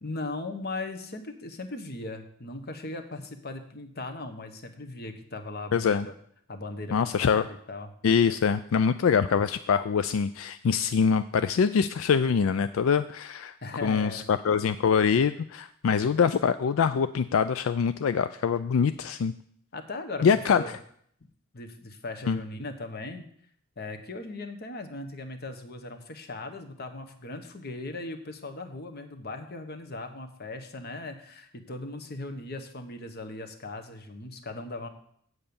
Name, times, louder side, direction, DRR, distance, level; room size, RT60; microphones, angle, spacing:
voice 1, 0.0-6.1 6.5-7.9 13.6-14.3 19.7-20.8 21.5-23.2 23.8-34.9, left 2 dB, 50° left, 6 dB, 1.2 m, -38 dB
voice 2, 5.7-6.1 6.9-7.4 8.0-13.5 13.8-19.3 20.2-20.6 22.3-22.4, left 6 dB, 80° left, 12 dB, 0.4 m, -24 dB
8.1 x 7.7 x 7.0 m, 0.65 s
head